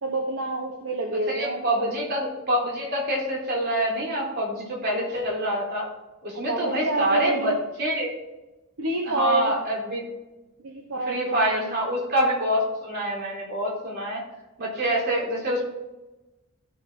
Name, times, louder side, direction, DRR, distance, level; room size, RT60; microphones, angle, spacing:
voice 1, 0.0-1.9 6.3-7.6 8.8-9.5 10.6-11.8, right 2 dB, 70° right, 1 dB, 1.1 m, -28 dB
voice 2, 1.3-5.9 6.2-8.1 9.0-10.0 11.1-14.2 14.6-15.6, equal, 45° right, -3 dB, 3.7 m, -26 dB
14.5 x 5.6 x 3.7 m, 1.0 s
head